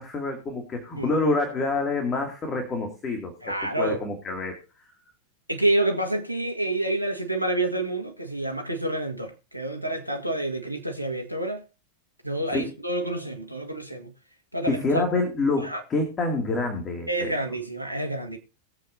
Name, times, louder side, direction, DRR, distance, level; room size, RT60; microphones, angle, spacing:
voice 1, 0.0-4.6 12.5-12.6 14.7-17.3, left 3 dB, 25° left, 2.5 m, -27 dB
voice 2, 3.4-4.0 5.5-11.6 12.2-14.1 14.5-15.0 15.6-15.8 17.1-18.4, right 1 dB, 90° left, 1.7 m, -28 dB
21.0 x 7.9 x 2.7 m
figure-of-eight pair, 90°, 0 cm